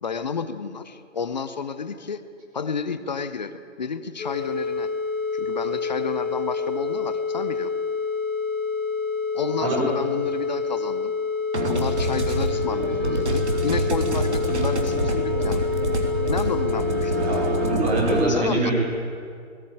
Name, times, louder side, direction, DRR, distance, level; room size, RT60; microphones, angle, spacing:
voice 1, 0.0-2.2 2.5-4.9 5.3-7.7 9.3-11.1 11.7-15.6 16.3-17.3 18.3-18.7, left 5 dB, 35° left, 12 dB, 0.8 m, -31 dB
sound 1, 4.2-17.7, left 5 dB, 5° left, 1.1 m, -27 dB
sound 2, 11.5-18.2, right 1 dB, 60° right, 3.3 m, -26 dB
voice 2, 17.2-18.7, right 2 dB, 15° right, -4 dB, 4.8 m, -24 dB
20.0 x 15.5 x 8.8 m, 2.3 s
figure-of-eight pair, 145°, 39 cm